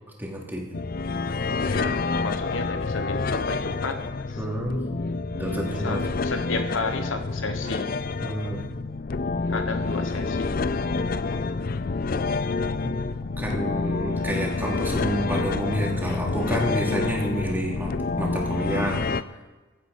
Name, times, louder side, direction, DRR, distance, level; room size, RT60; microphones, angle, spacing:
voice 1, 0.2-0.7 4.4-4.8 5.3-6.0 8.2-8.6 12.8-13.0 13.4-19.1, right 1 dB, 10° right, -2 dB, 2.9 m, -29 dB
sound 1, 0.7-19.2, left 3 dB, 45° left, 0.5 m, -28 dB
voice 2, 1.6-4.0 4.3-4.4 5.8-7.9 9.5-10.6, left 3 dB, 70° left, 7 dB, 1.3 m, -32 dB
16.0 x 12.0 x 5.4 m, 1.2 s
head